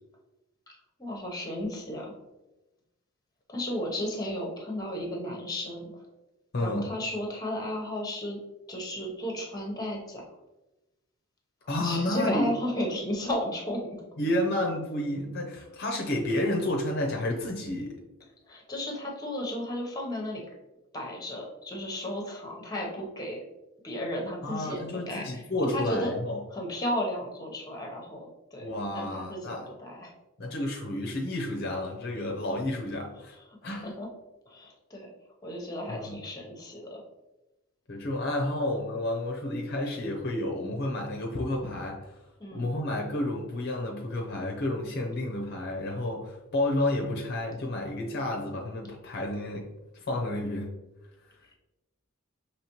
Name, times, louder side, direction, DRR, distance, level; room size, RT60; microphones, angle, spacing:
voice 1, 1.0-2.1 3.5-6.1 6.6-8.4 8.7-10.2 11.8-13.9 18.5-20.4 20.9-23.4 23.8-25.4 25.7-26.1 26.5-30.1 33.8-34.1 34.5-35.1 35.4-37.0 42.4-42.7, left 1 dB, 20° left, 0 dB, 0.9 m, -34 dB
voice 2, 6.5-6.9 11.7-12.6 14.2-18.0 24.4-26.4 28.6-29.7 30.4-33.4 33.6-33.9 35.9-36.2 37.9-42.2 42.5-49.7 49.9-50.7, left 1 dB, 50° left, 0 dB, 0.6 m, -31 dB
5.7 x 3.0 x 3.0 m, 1.0 s
head